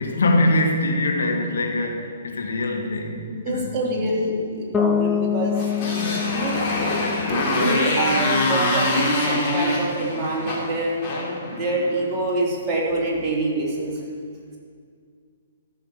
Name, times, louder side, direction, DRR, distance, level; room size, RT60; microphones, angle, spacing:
voice 1, 0.0-3.8, left 1 dB, 70° left, 2 dB, 2.0 m, -23 dB
voice 2, 3.4-5.6 6.3-6.6 7.4-11.0 11.5-14.0, right 1 dB, 20° right, -5 dB, 3.4 m, -26 dB
Bass guitar, 4.7-8.6, left 8 dB, 15° left, 0.4 m, -26 dB
Motorcycle, 5.5-12.0, left 1 dB, 30° left, 3.5 m, -24 dB
13.5 x 6.7 x 7.8 m, 2.2 s
figure-of-eight pair, 125°, 0 cm